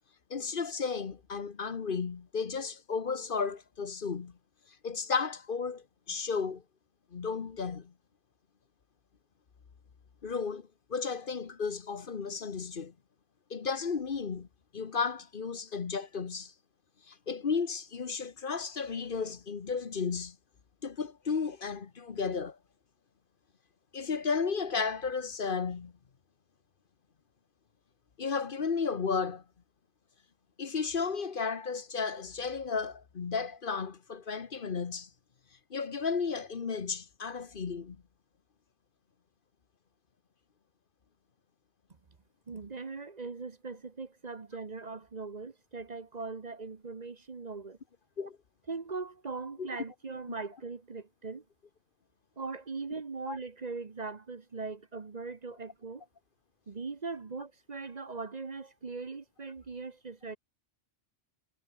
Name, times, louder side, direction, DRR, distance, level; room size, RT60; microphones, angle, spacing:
voice 1, 0.3-4.4 4.8-6.6 7.1-7.9 10.2-12.9 13.5-14.5 14.7-16.5 17.1-20.4 20.8-22.6 23.9-25.9 28.2-29.4 30.6-35.1 35.7-38.0 48.2-48.4 49.6-49.7 53.3-53.4, left 5 dB, 55° left, 1.2 m, -33 dB
voice 2, 42.5-47.8 48.7-51.4 52.4-56.0 56.7-60.4, right 4 dB, 40° right, 1.1 m, -40 dB
omnidirectional pair, 1.1 m